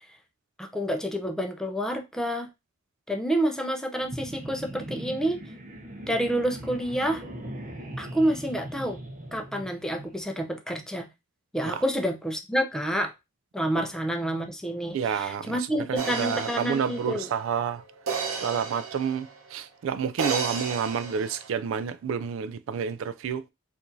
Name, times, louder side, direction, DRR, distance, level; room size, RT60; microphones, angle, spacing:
voice 1, 0.6-2.5 3.1-5.4 6.1-7.2 8.0-9.0 9.3-11.1 11.5-13.1 13.5-17.3, equal, 5° left, 0.5 m, -28 dB
sound 1, 4.0-10.2, right 1 dB, 40° right, 0.7 m, -40 dB
voice 2, 14.9-17.8 18.4-23.4, right 7 dB, 70° right, 0.3 m, -29 dB
sound 2, 16.0-19.5 20.2-21.5, right 5 dB, 85° right, 0.7 m, -33 dB
4.6 x 2.5 x 2.6 m
head